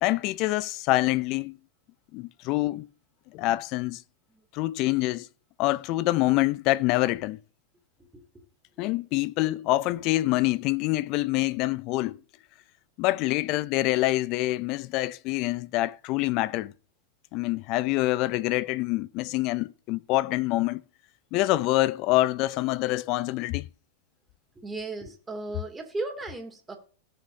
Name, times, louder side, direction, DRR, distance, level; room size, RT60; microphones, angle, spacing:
voice 1, 0.0-1.6 2.1-2.9 3.3-4.0 4.5-5.3 5.6-7.4 8.8-12.2 13.0-16.7 17.3-20.8 21.3-23.7, left 18 dB, 50° left, 0.5 m, -26 dB
voice 2, 24.6-26.8, right 2 dB, 15° right, 2.7 m, -36 dB
18.0 x 6.4 x 2.8 m
hypercardioid pair, 105°, 0 cm